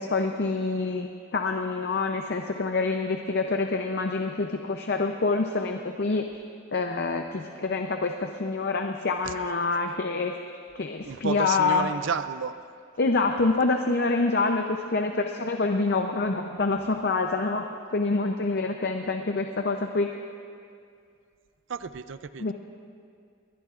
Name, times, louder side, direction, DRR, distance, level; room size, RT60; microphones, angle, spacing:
voice 1, 0.0-6.3 6.7-10.4 10.7-11.9 13.0-20.1 22.4-22.5, left 3 dB, 55° left, 4 dB, 0.6 m, -26 dB
voice 2, 11.0-12.5 21.7-22.4, right 6 dB, 70° right, 12 dB, 0.5 m, -31 dB
21.5 x 20.5 x 2.5 m, 2.3 s
head